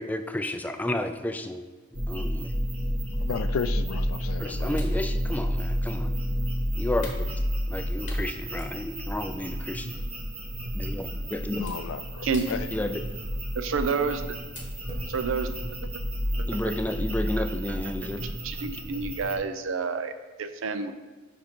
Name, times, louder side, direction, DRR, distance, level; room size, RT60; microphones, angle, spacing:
voice 1, 0.0-1.7 2.1-2.5 4.4-6.1 6.8-7.2 7.7-9.9 10.7-11.6 12.7-13.0 16.5-18.2, left 1 dB, 10° left, 7 dB, 0.3 m, -31 dB
sound 1, 1.9-19.4, equal, 30° right, 1.1 m, -31 dB
voice 2, 3.2-4.7 11.5-12.7, left 6 dB, 90° left, 12 dB, 0.3 m, -33 dB
sound 2, 3.9-4.2 4.8-6.3 7.0-7.8 8.1-9.3 9.8-10.0 10.9-11.0 11.7-12.0 12.3-13.2 14.0-14.2 14.6-14.7, left 3 dB, 40° left, 1.1 m, -46 dB
voice 3, 13.6-14.4 15.1-15.5 16.4-16.5 18.4-20.9, right 5 dB, 75° right, 10 dB, 0.5 m, -29 dB
5.3 x 5.1 x 4.4 m, 1.3 s
head